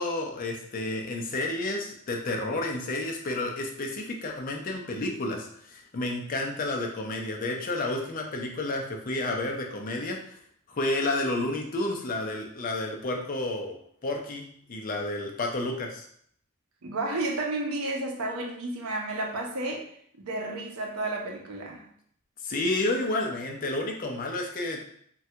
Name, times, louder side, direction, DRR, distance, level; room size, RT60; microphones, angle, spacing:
voice 1, 0.0-10.2 10.7-13.8 14.0-16.0 22.4-24.8, left 2 dB, 40° left, 1 dB, 0.4 m, -30 dB
voice 2, 16.8-19.8 20.2-21.8, right 2 dB, 80° right, 0 dB, 0.6 m, -31 dB
3.2 x 2.3 x 2.8 m, 0.65 s
head